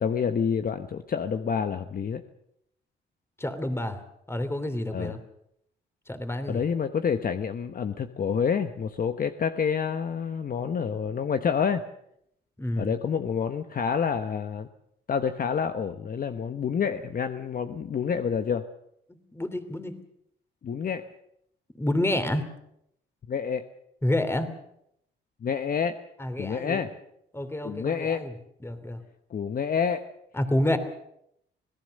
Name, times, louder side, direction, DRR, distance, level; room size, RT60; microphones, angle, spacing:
voice 1, 0.0-2.2 4.9-5.1 6.5-11.8 12.8-14.7 15.1-18.6 20.6-21.0 23.3-23.6 25.4-26.0 26.4-26.9 27.6-28.2 29.3-30.0, left 6 dB, 45° left, 8 dB, 1.1 m, -28 dB
voice 2, 3.4-4.0 4.3-5.2 6.1-6.6 12.6-12.9 19.1-20.0 21.7-22.4 24.0-24.5 26.2-26.9 27.3-28.3 28.6-29.0 30.3-30.8, left 1 dB, 10° left, 10 dB, 2.9 m, -28 dB
26.5 x 17.5 x 6.6 m, 0.76 s
cardioid pair, 90°, 20 cm